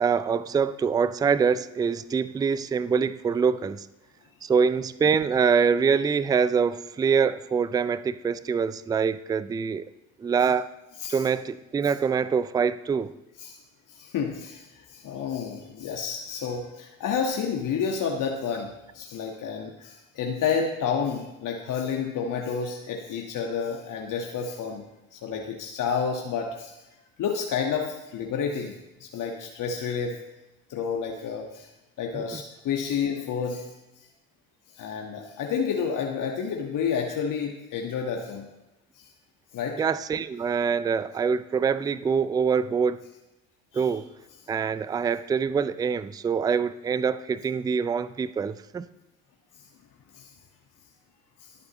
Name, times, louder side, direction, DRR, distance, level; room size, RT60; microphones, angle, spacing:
voice 1, 0.0-3.9 4.4-9.9 10.2-10.7 11.1-13.1 32.1-32.4 39.8-43.0 43.7-44.1 44.5-48.9, right 6 dB, 10° right, 16 dB, 0.3 m, -25 dB
voice 2, 13.9-24.8 25.1-26.7 27.2-30.2 30.7-31.7 32.0-33.7 34.7-38.5 39.0-39.1 39.5-39.8 43.7-43.9 50.1-50.3, left 6 dB, 50° left, 1 dB, 1.5 m, -30 dB
18.5 x 8.3 x 3.1 m, 1.0 s
hypercardioid pair, 60°, 41 cm